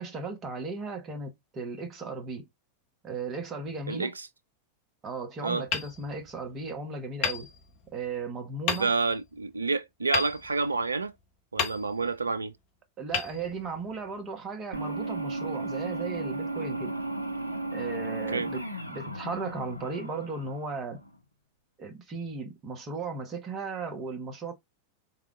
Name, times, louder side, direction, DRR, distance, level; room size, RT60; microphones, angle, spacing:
voice 1, 0.0-2.5 3.0-4.1 5.0-7.5 7.9-8.9 13.0-16.9 17.7-21.0 21.8-24.5, right 4 dB, 30° right, 1.1 m, -36 dB
voice 2, 3.9-4.3 5.4-5.7 8.7-11.1 11.5-12.5 18.3-18.5, right 4 dB, 80° right, 0.3 m, -29 dB
Hammer, 5.7-6.7 7.2-8.1 8.7-9.3 10.1-11.1 11.6-12.3 13.1-14.1, left 7 dB, 45° left, 1.2 m, -34 dB
sound 1, 14.7-21.1, right 2 dB, 90° left, 0.4 m, -35 dB
3.6 x 3.3 x 3.6 m
figure-of-eight pair, 90°, 0 cm